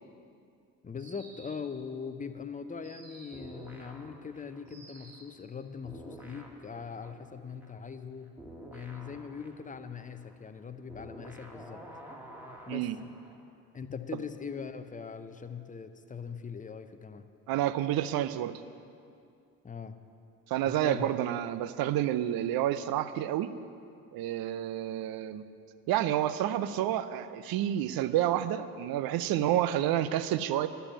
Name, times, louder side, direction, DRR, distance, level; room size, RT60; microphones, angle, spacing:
voice 1, 0.8-8.4 8.7-11.8 12.7-12.9 13.7-17.3 19.6-20.0 20.6-21.1, left 6 dB, 15° left, 10 dB, 0.7 m, -41 dB
sound 1, 1.0-1.8 2.8-3.6 4.7-5.4, right 3 dB, 75° right, 1.8 m, -53 dB
sound 2, 3.3-5.6 5.8-13.4, right 1 dB, 5° right, 1.8 m, -50 dB
voice 2, 17.5-18.5 20.5-23.5 24.1-25.4 25.9-30.7, right 12 dB, 50° right, 12 dB, 0.7 m, -29 dB
11.5 x 6.9 x 8.8 m, 2.4 s
figure-of-eight pair, 50°, 47 cm